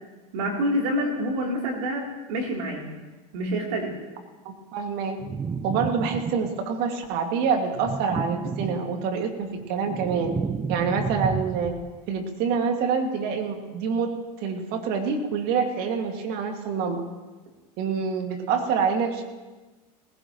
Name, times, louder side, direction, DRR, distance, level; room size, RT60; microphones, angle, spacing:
voice 1, 0.3-2.9 3.3-3.9, equal, 70° right, -1 dB, 3.4 m, -27 dB
voice 2, 4.4-5.2 5.6-10.4 10.7-11.8 12.1-17.0 17.8-19.2, right 5 dB, 55° right, 4 dB, 2.2 m, -26 dB
sound 1, 5.2-6.8 7.7-9.2 9.6-12.0, right 5 dB, 15° right, 0.4 m, -31 dB
19.0 x 16.5 x 3.1 m, 1.2 s
hypercardioid pair, 95°, 20 cm